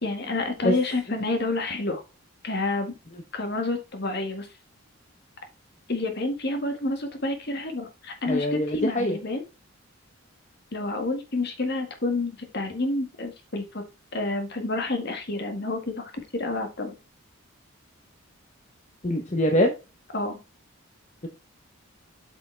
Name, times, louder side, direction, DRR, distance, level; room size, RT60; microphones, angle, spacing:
voice 1, 0.0-2.0 2.4-2.9 3.3-4.5 5.9-9.4 10.7-13.8 14.1-16.9 20.1-20.4, left 2 dB, 50° left, 6 dB, 1.7 m, -29 dB
voice 2, 8.3-9.2 19.0-19.7 21.2-21.3, left 1 dB, 35° left, 4 dB, 0.9 m, -24 dB
8.4 x 5.5 x 3.3 m, 0.28 s
head